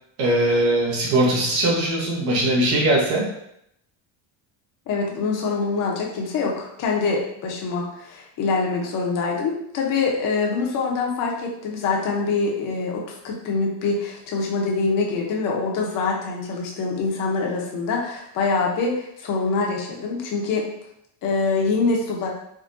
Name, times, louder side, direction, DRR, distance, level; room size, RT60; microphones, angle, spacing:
voice 1, 0.2-3.3, right 1 dB, 75° right, -2 dB, 1.1 m, -20 dB
voice 2, 4.9-20.7 21.2-22.3, left 4 dB, 40° left, -1 dB, 0.7 m, -24 dB
3.6 x 2.2 x 2.5 m, 0.76 s
cardioid pair, 125°, 48 cm